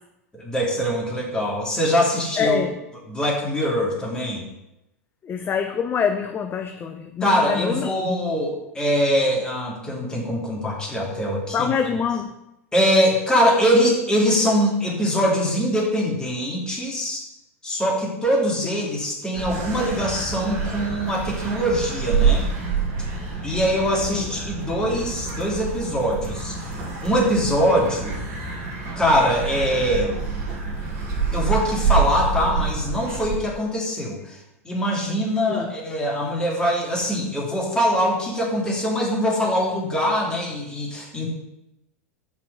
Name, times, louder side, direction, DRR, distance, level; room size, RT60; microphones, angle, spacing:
voice 1, 0.3-2.6 3.1-4.4 7.2-11.7 12.7-17.2 17.6-22.5 23.4-26.7 27.0-28.2 29.0-30.2 31.3-41.3, equal, 10° left, -4 dB, 2.6 m, -23 dB
voice 2, 2.4-2.7 5.2-8.2 11.5-12.3 24.1-24.2 35.5-35.7, left 6 dB, 25° left, 6 dB, 0.5 m, -25 dB
sound 1, 19.3-33.4, right 5 dB, 45° right, 2.4 m, -27 dB
5.7 x 4.7 x 6.5 m, 0.89 s
figure-of-eight pair, 90°, 8 cm